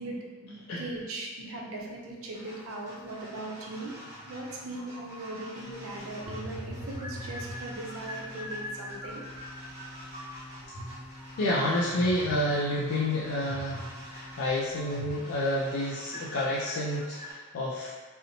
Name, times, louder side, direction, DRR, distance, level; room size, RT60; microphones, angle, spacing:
voice 1, 0.0-9.3, right 2 dB, 75° right, -1 dB, 0.5 m, -39 dB
sound 1, 2.3-17.3, equal, 15° right, 0.9 m, -45 dB
sound 2, 5.6-15.1, equal, 25° left, 0.5 m, -44 dB
voice 2, 11.4-17.9, left 1 dB, 85° left, -6 dB, 0.4 m, -29 dB
2.7 x 2.0 x 2.6 m, 1.4 s
head